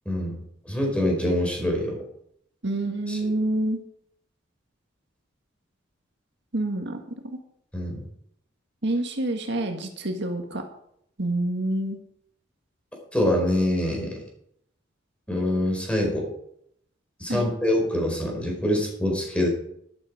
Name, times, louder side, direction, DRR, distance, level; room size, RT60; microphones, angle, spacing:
voice 1, 0.0-0.4 0.7-2.0 3.1-3.2 7.7-8.0 13.1-14.2 15.3-16.3 17.2-19.5, left 1 dB, 5° left, 0 dB, 4.7 m, -25 dB
voice 2, 2.6-3.8 6.5-7.0 8.8-10.6 11.2-12.0 17.3-17.5, right 1 dB, 60° right, 4 dB, 1.7 m, -27 dB
12.5 x 12.0 x 4.9 m, 0.71 s
head